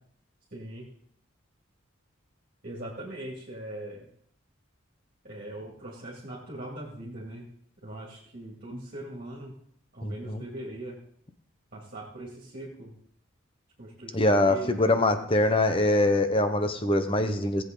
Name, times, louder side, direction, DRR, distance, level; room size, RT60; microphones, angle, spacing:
voice 1, 0.5-0.9 2.6-4.1 5.2-7.5 7.8-9.6 9.9-11.0 11.7-12.9 13.8-14.9, right 1 dB, 45° right, -5 dB, 2.6 m, -40 dB
voice 2, 10.0-10.4 14.1-17.6, left 1 dB, 25° left, 8 dB, 0.9 m, -23 dB
18.0 x 8.0 x 3.9 m, 0.66 s
head